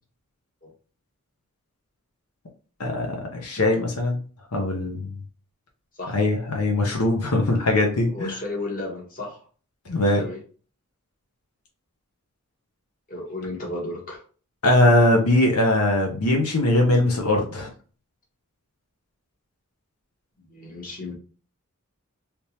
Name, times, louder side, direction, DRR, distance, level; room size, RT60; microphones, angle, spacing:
voice 1, 3.3-4.2 4.5-5.2 6.1-8.3 9.9-10.2 14.6-17.7, left 1 dB, 90° left, 2 dB, 0.8 m, -21 dB
voice 2, 8.1-9.4 10.1-10.4 13.1-14.2 20.5-21.1, left 2 dB, 40° left, -2 dB, 1.4 m, -33 dB
3.5 x 2.9 x 2.8 m, 0.38 s
head